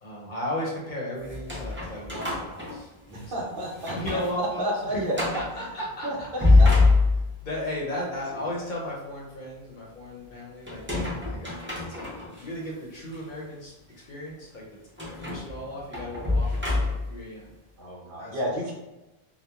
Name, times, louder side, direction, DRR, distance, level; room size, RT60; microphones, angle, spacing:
voice 1, 0.0-3.5 3.9-5.0 5.3-6.7 7.4-10.8 11.3-11.6 11.9-13.7 14.1-14.6 15.2-17.5 18.2-18.4, left 1 dB, 55° left, -3 dB, 0.7 m, -35 dB
sound 1, 1.2-3.3 3.7-4.3 4.6-4.7 5.1-5.5 6.2-7.5 10.7-12.4 13.1-13.2 15.0-17.2, left 3 dB, 15° right, 0.5 m, -24 dB
voice 2, 3.1-4.2 4.6-5.6 6.3-6.7 17.8-18.7, equal, 60° right, -3 dB, 0.8 m, -31 dB
2.9 x 2.1 x 2.3 m, 1.0 s
omnidirectional pair, 1.1 m